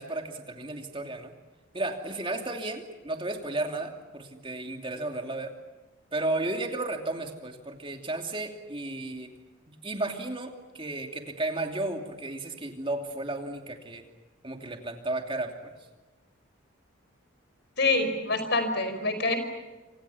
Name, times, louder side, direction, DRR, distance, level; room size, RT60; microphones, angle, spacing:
voice 1, 0.0-1.3 1.7-5.6 6.1-9.3 9.7-14.0 14.4-15.7, right 2 dB, 25° right, 4 dB, 2.9 m, -33 dB
voice 2, 17.8-19.4, left 2 dB, 55° left, 9 dB, 5.3 m, -26 dB
27.5 x 27.0 x 7.1 m, 1.2 s
head